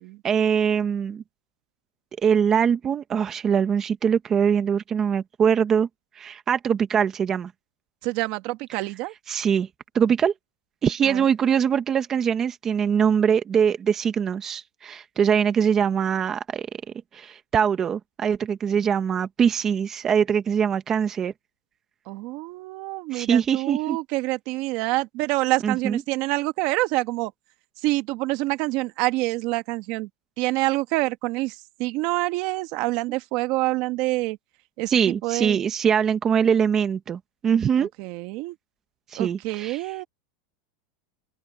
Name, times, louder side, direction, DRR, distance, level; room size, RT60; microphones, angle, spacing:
voice 1, 0.2-1.2 2.2-5.9 6.1-7.5 9.3-9.7 9.9-10.3 10.8-16.7 17.1-21.3 23.1-24.0 25.6-26.0 34.9-37.9 39.1-39.8, right 7 dB, 20° right, 1.2 m, -22 dB
voice 2, 8.0-9.1 11.0-11.2 22.1-27.3 27.8-30.1 30.4-34.4 34.8-35.6 37.8-38.5 39.2-40.0, right 20 dB, 45° right, 1.4 m, -27 dB
supercardioid pair, 160°, 2 cm